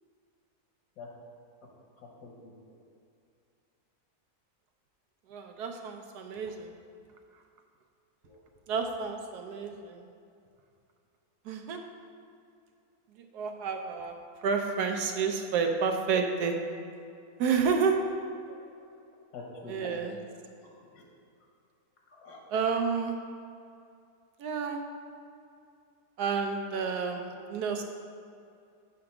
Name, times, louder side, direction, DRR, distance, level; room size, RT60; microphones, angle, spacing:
voice 1, 2.2-2.5 8.2-8.4 18.5-18.6 19.3-20.1 20.6-21.0 22.1-22.7, left 3 dB, 80° left, -1 dB, 1.5 m, -46 dB
voice 2, 5.3-6.7 8.7-10.1 11.4-11.8 13.2-14.2 14.4-16.6 17.4-18.0 19.7-20.1 22.5-23.2 24.4-24.8 26.2-27.8, right 5 dB, 90° right, 4 dB, 1.3 m, -30 dB
7.5 x 3.7 x 5.9 m, 2.4 s
omnidirectional pair, 1.7 m